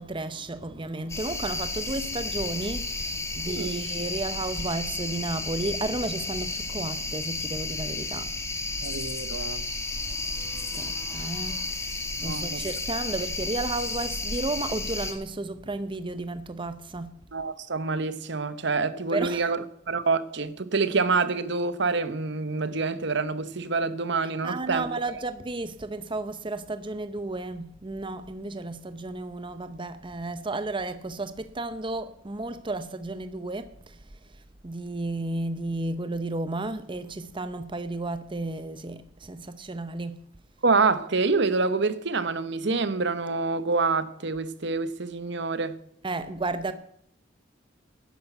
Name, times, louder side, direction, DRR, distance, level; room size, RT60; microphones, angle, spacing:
voice 1, 0.0-8.4 10.4-17.2 19.1-19.4 24.4-34.0 34.6-40.2 46.0-46.7, right 2 dB, 25° right, 0.7 m, -33 dB
sound 1, 1.1-15.1, left 3 dB, 15° left, 2.0 m, -32 dB
voice 2, 3.5-3.8 8.8-9.6 12.2-12.6 17.3-19.6 19.9-24.9 40.6-45.8, right 4 dB, 70° right, 1.2 m, -27 dB
12.0 x 10.5 x 8.0 m
head